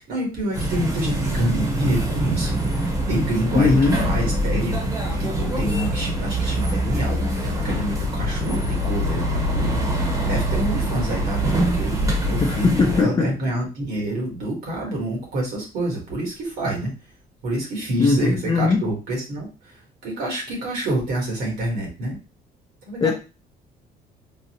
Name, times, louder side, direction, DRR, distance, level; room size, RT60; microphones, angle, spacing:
voice 1, 0.0-16.9 17.4-19.7 20.0-22.2 22.8-23.1, right 1 dB, 70° right, -1 dB, 1.5 m, -27 dB
sound 1, 0.5-13.0, equal, 20° right, 0.9 m, -24 dB
voice 2, 3.5-4.0 12.4-13.4 18.0-18.9 23.0-23.1, left 4 dB, 25° left, 1 dB, 0.5 m, -19 dB
3.8 x 2.0 x 2.9 m, 0.31 s
cardioid pair, 110°, 17 cm